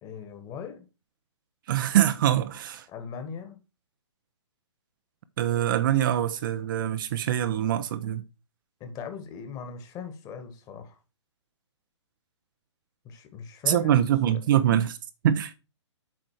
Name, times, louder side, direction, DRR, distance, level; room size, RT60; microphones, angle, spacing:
voice 1, 0.0-0.8 2.9-3.6 8.8-11.0 13.0-14.0 14.3-14.4, left 6 dB, 25° left, 1.7 m, -39 dB
voice 2, 1.7-2.8 5.4-8.2 13.7-15.0 15.2-15.6, right 11 dB, 45° right, 0.7 m, -24 dB
7.9 x 5.1 x 4.7 m
figure-of-eight pair, 130°, 15 cm